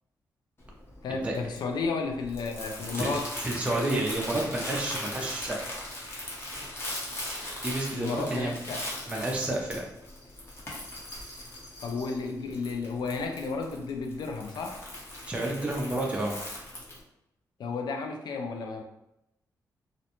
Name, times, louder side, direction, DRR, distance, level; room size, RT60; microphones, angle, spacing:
Crumpling crinkling, 0.6-17.0, left 1 dB, 35° left, 0.7 m, -40 dB
voice 1, 1.0-3.3 7.9-8.9 11.8-14.8 17.6-18.8, left 4 dB, 75° left, 4 dB, 0.4 m, -32 dB
voice 2, 3.0-5.8 7.6-8.5 9.1-9.8 15.3-16.3, right 1 dB, 15° right, -2 dB, 0.5 m, -30 dB
2.5 x 2.1 x 2.8 m, 0.87 s
wide cardioid pair, 120°, 7 cm